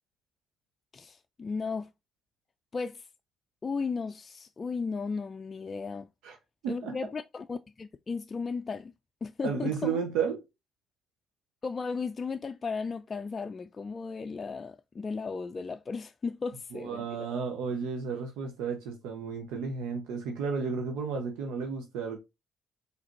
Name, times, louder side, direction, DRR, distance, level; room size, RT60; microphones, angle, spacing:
voice 1, 0.9-1.9 2.7-3.0 3.6-6.1 6.7-8.9 9.2-10.0 11.6-17.0, left 4 dB, 40° left, 0.3 m, -35 dB
voice 2, 6.6-7.0 9.4-10.4 16.7-22.2, right 6 dB, 80° right, 0.8 m, -33 dB
4.9 x 3.2 x 2.9 m
hypercardioid pair, 55°, 0 cm